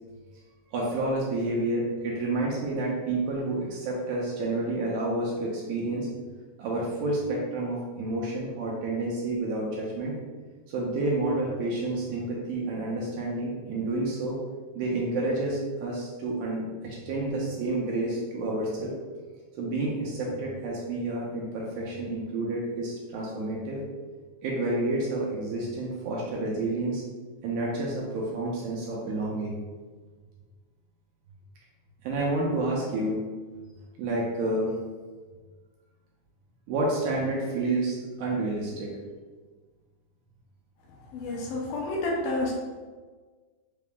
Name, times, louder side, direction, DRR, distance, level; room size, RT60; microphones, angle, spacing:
voice 1, 0.7-6.1 6.6-10.2 10.7-14.4 14.7-18.9 19.6-23.8 24.4-27.0 27.4-29.6 32.0-33.2 34.0-34.7 36.7-38.9, right 2 dB, 80° right, -3 dB, 1.8 m, -29 dB
voice 2, 41.1-42.5, left 2 dB, 80° left, -2 dB, 2.2 m, -29 dB
5.7 x 2.0 x 3.4 m, 1.4 s
omnidirectional pair, 3.7 m